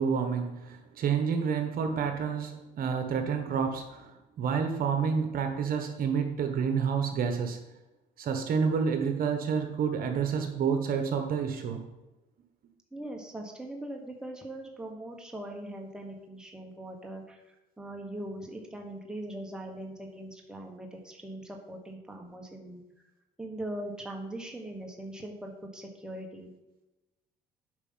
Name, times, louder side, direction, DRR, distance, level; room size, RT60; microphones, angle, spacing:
voice 1, 0.0-7.6 8.2-11.8, right 6 dB, 60° right, 5 dB, 1.3 m, -29 dB
voice 2, 12.9-17.4 17.8-22.8 23.4-26.5, right 1 dB, 5° right, 0 dB, 1.4 m, -41 dB
8.2 x 5.1 x 5.6 m, 1.0 s
cardioid pair, 110°, 17 cm